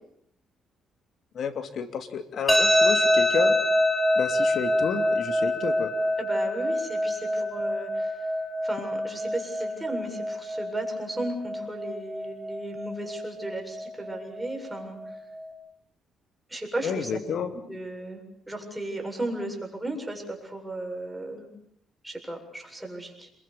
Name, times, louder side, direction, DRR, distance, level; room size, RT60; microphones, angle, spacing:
voice 1, 1.3-3.6 4.1-5.9 16.8-17.5, left 6 dB, 65° left, 8 dB, 2.8 m, -30 dB
sound 1, 2.5-15.5, left 1 dB, 10° left, 3.8 m, -26 dB
voice 2, 6.2-8.3 8.6-15.0 16.5-17.1 17.7-18.2 18.5-21.5 22.0-23.3, right 1 dB, 5° right, 2 dB, 7.7 m, -35 dB
28.5 x 22.5 x 7.2 m, 0.70 s
cardioid pair, 90°, 0 cm